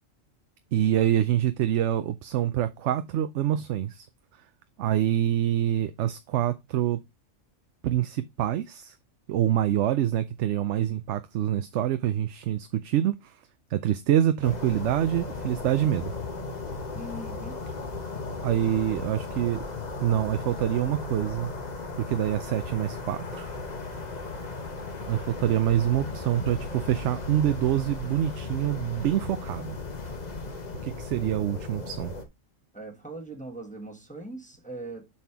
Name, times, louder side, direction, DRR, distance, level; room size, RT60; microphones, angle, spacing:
voice 1, 0.7-4.1 4.8-7.0 7.8-8.9 9.3-13.3 13.7-16.1 18.4-19.6 20.0-21.5 22.0-23.5 25.1-29.8 30.8-32.1, right 11 dB, 70° right, 0.8 m, -26 dB
sound 1, 14.4-32.2, left 3 dB, 35° left, 1.2 m, -36 dB
voice 2, 16.9-17.6 26.0-26.3 31.8-31.9 32.7-35.1, right 1 dB, 5° left, 1.3 m, -41 dB
7.3 x 4.3 x 4.7 m
omnidirectional pair, 1.3 m